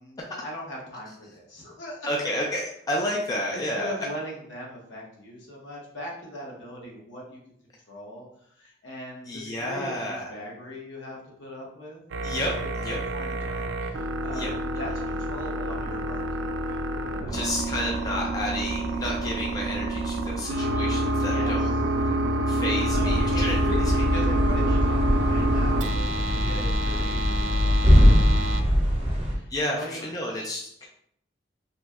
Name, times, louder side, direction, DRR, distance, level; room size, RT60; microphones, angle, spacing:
voice 1, 0.0-2.3 3.5-7.4 7.9-8.3 8.6-12.0 12.6-12.7 13.1-17.5 21.1-21.6 22.6-22.7 22.9-29.5 29.7-30.5, equal, 80° left, -3 dB, 0.9 m, -40 dB
voice 2, 2.1-4.0 9.3-10.3 12.2-13.0 14.3-14.5 17.3-21.7 22.5-23.6 29.5-30.9, left 1 dB, 20° left, -2 dB, 0.3 m, -31 dB
sound 1, 12.1-28.6, right 1 dB, 85° right, 0.4 m, -28 dB
sound 2, 22.9-29.4, equal, 30° right, 0.6 m, -22 dB
2.9 x 2.6 x 2.3 m, 0.68 s
head